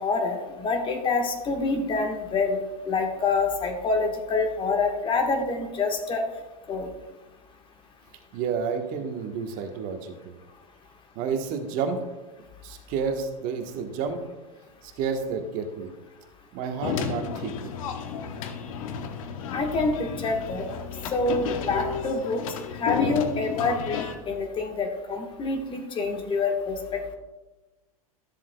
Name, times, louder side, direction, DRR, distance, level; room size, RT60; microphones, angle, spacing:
voice 1, 0.0-2.6 2.9-6.2 6.7-6.9 19.5-20.7 21.1-22.4 22.7-27.1, left 3 dB, 25° left, 4 dB, 1.4 m, -26 dB
voice 2, 8.3-10.3 11.1-12.0 12.6-14.2 14.8-15.9 16.5-17.5, right 6 dB, 50° right, 5 dB, 1.3 m, -30 dB
sound 1, 16.8-24.2, left 6 dB, 65° left, 0.9 m, -32 dB
13.0 x 7.4 x 2.3 m, 1.1 s
hypercardioid pair, 100°, 19 cm